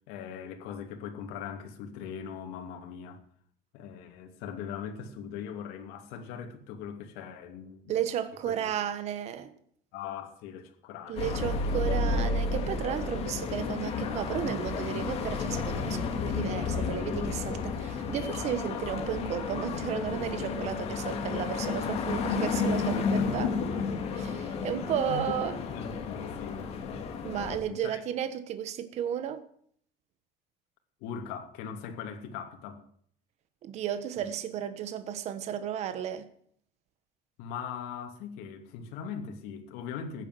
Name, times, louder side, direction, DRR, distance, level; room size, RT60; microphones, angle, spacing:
voice 1, 0.1-3.2 3.7-7.9 8.5-8.7 9.9-11.8 23.1-23.7 25.1-26.6 27.5-28.0 31.0-32.8 34.2-34.3 37.4-40.3, left 7 dB, 85° left, 2.8 m, -40 dB
voice 2, 7.9-9.5 11.1-23.5 24.2-25.5 27.2-29.4 33.6-36.3, right 10 dB, 45° right, 1.3 m, -33 dB
sound 1, 11.2-27.6, left 4 dB, 40° left, 2.4 m, -31 dB
15.5 x 10.5 x 7.9 m
cardioid pair, 175°, 16 cm